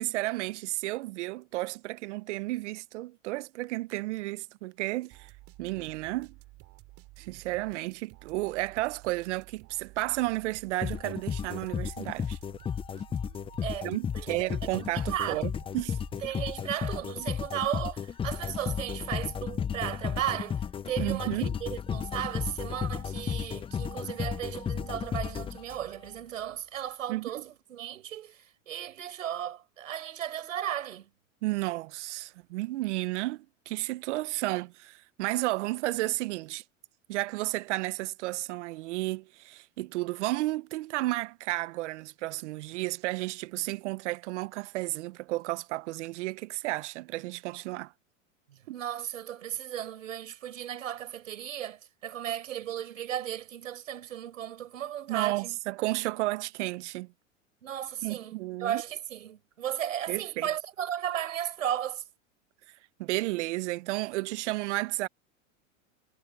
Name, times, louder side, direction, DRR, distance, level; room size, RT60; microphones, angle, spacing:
voice 1, 0.0-5.3 5.6-6.4 7.2-12.4 13.8-16.0 21.0-21.5 27.1-27.4 31.4-36.6 37.1-47.9 48.7-48.8 55.1-57.1 58.0-58.8 60.1-60.5 63.0-65.1, right 19 dB, 65° right, 1.2 m, -32 dB
sound 1, 5.1-17.3, right 21 dB, 50° right, 3.9 m, -53 dB
sound 2, 10.8-26.1, left 7 dB, 15° left, 0.6 m, -34 dB
voice 2, 14.1-15.4 16.2-31.1 48.5-55.6 57.6-62.0, right 11 dB, 85° right, 5.2 m, -35 dB
hypercardioid pair, 110°, 38 cm